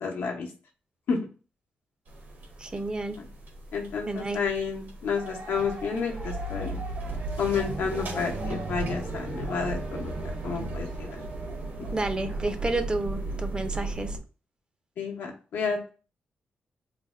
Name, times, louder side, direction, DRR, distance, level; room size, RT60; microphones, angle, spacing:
voice 1, 0.0-0.5 1.1-1.2 3.7-6.8 7.4-10.1 10.4-11.2 11.8-11.9 15.0-15.9, left 5 dB, 80° left, 1 dB, 0.8 m, -30 dB
sound 1, 2.1-14.2, right 2 dB, 65° right, 1.2 m, -35 dB
voice 2, 2.6-3.2 4.1-4.4 11.9-14.2, right 2 dB, 25° right, 8 dB, 0.5 m, -30 dB
sound 2, 5.1-12.8, right 2 dB, 90° right, 1.6 m, -43 dB
3.3 x 2.1 x 3.4 m, 0.36 s
cardioid pair, 75°, 4 cm